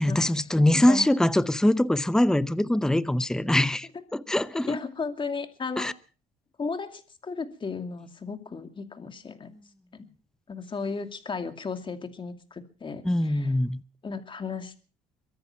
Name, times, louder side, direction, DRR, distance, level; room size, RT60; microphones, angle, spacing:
voice 1, 0.0-4.8 5.8-5.9 13.0-13.8, left 1 dB, 5° left, 0.7 m, -23 dB
voice 2, 4.6-5.9 6.6-9.5 9.9-10.1 10.5-13.5 14.0-14.7, left 4 dB, 30° left, 2.5 m, -34 dB
23.0 x 10.5 x 5.8 m
cardioid pair, 110°, 17 cm